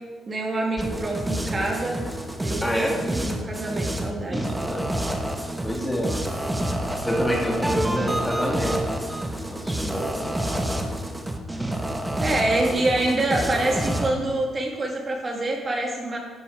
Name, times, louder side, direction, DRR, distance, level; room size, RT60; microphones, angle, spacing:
voice 1, 0.3-2.0 2.4-4.7 7.8-8.1 12.2-16.2, right 2 dB, 35° right, -1 dB, 1.8 m, -26 dB
sound 1, 0.8-14.1, right 1 dB, 10° right, 1.2 m, -28 dB
voice 2, 2.6-3.0 4.3-4.8 5.6-6.2 7.0-9.0 9.5-10.3, equal, 10° left, -2 dB, 2.5 m, -27 dB
12.0 x 6.9 x 4.8 m, 1.5 s
cardioid pair, 90°, 0 cm